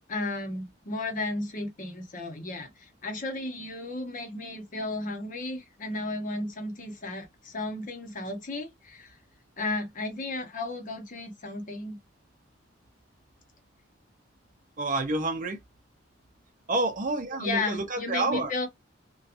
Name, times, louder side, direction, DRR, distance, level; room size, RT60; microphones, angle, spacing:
voice 1, 0.1-9.2 9.6-12.0 17.4-18.7, left 2 dB, 45° left, 0.8 m, -34 dB
voice 2, 14.8-15.6 16.7-18.5, right 2 dB, 45° right, 0.6 m, -28 dB
2.8 x 2.3 x 2.5 m
head